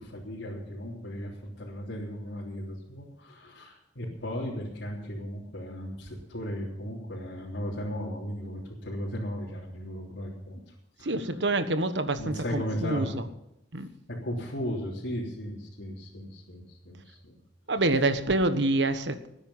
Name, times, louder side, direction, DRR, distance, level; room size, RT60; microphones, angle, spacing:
voice 1, 0.0-10.6 11.0-11.2 12.2-13.1 14.1-17.4, equal, 90° left, -6 dB, 3.5 m, -36 dB
voice 2, 11.0-13.3 13.7-13.9 17.7-19.3, right 2 dB, 70° right, 9 dB, 1.4 m, -27 dB
19.0 x 10.0 x 5.7 m, 0.85 s
head